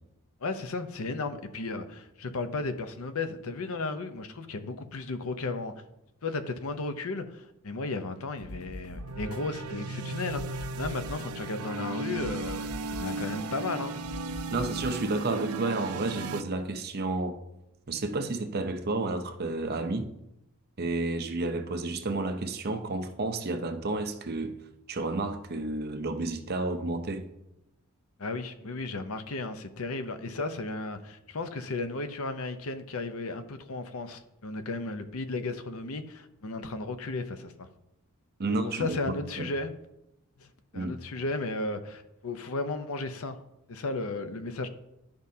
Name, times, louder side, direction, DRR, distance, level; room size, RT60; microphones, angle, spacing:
voice 1, 0.4-5.7 6.2-14.0 28.2-37.7 38.5-39.7 40.4-43.4 43.7-44.7, left 3 dB, 70° left, 0.7 m, -34 dB
sound 1, 8.4-15.9, left 1 dB, 85° left, 1.5 m, -45 dB
sound 2, 8.9-16.4, right 4 dB, 85° right, 0.5 m, -36 dB
voice 2, 14.5-17.4 17.9-20.1 20.8-24.6 24.9-27.3 38.4-39.5 40.7-40.9, right 2 dB, 45° right, 0.7 m, -31 dB
12.0 x 5.2 x 2.8 m
head